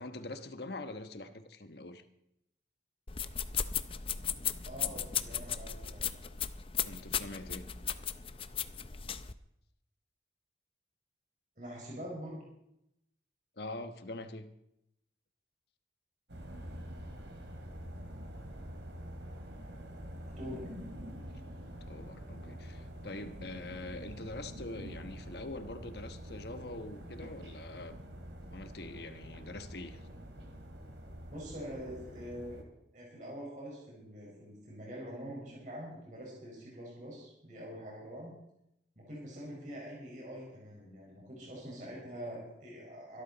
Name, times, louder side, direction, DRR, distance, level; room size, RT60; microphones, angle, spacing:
voice 1, 0.0-2.0 6.8-7.7 13.6-14.5 21.9-28.0 28.5-30.0, left 2 dB, 65° left, 1.2 m, -44 dB
sound 1, 3.1-9.3, left 8 dB, 30° left, 0.5 m, -36 dB
voice 2, 4.6-6.1 11.6-12.5 20.2-20.7 31.3-32.6 32.9-38.3 39.0-43.2, equal, 45° right, 5.0 m, -45 dB
sound 2, 16.3-32.6, equal, 85° right, 2.7 m, -46 dB
23.0 x 12.5 x 4.1 m
head